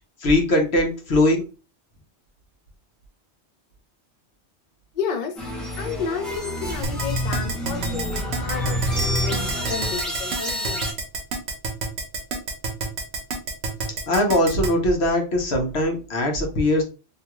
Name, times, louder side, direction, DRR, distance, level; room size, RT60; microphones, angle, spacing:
voice 1, 0.2-1.4 14.1-16.8, left 1 dB, 70° left, 2 dB, 1.1 m, -20 dB
voice 2, 4.9-5.3 5.8-10.9, left 6 dB, 55° left, 4 dB, 0.5 m, -31 dB
sound 1, 5.4-10.9, equal, ahead, 0.6 m, -28 dB
Keyboard (musical), 6.8-14.7, right 3 dB, 75° right, 1.0 m, -28 dB
2.8 x 2.3 x 2.9 m, 0.33 s
omnidirectional pair, 1.1 m